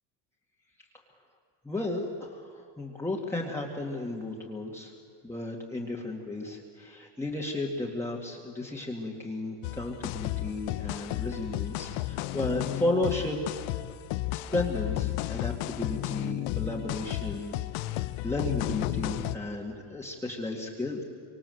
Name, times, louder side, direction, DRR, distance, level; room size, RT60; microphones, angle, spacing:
voice 1, 1.6-4.9 5.2-13.4 14.3-21.0, left 2 dB, 5° left, -3 dB, 2.1 m, -34 dB
sound 1, 9.6-19.4, left 16 dB, 90° left, 1.1 m, -33 dB
28.0 x 25.0 x 7.9 m, 2.3 s
cardioid pair, 165°, 48 cm